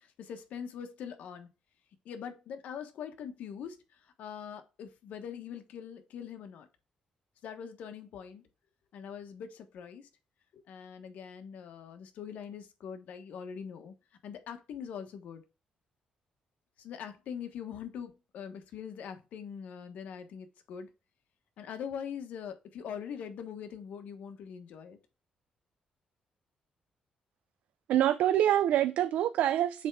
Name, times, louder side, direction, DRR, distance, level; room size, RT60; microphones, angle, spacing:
voice 1, 0.2-1.5 2.0-3.8 4.2-6.7 7.4-8.4 8.9-10.1 10.5-13.9 14.2-15.4 16.8-20.9 21.6-25.0, left 7 dB, 80° left, 1.3 m, -42 dB
voice 2, 27.9-29.9, right 11 dB, 85° right, 0.4 m, -26 dB
7.3 x 3.5 x 4.7 m
cardioid pair, 115°, 3 cm